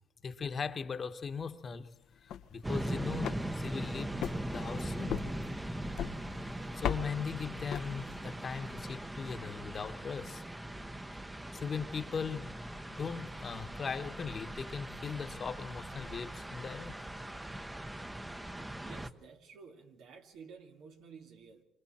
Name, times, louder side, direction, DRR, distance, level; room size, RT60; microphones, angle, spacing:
voice 1, 0.2-1.9 2.2-4.1 4.5-5.3 6.7-10.4 11.5-17.0, left 6 dB, 45° left, 1.2 m, -39 dB
sound 1, 2.1-8.4, left 9 dB, 80° left, 0.8 m, -41 dB
sound 2, 2.6-19.1, right 1 dB, 10° right, 0.9 m, -40 dB
voice 2, 18.8-21.6, right 5 dB, 85° right, 2.3 m, -53 dB
27.0 x 25.0 x 4.4 m
cardioid pair, 90°, 0 cm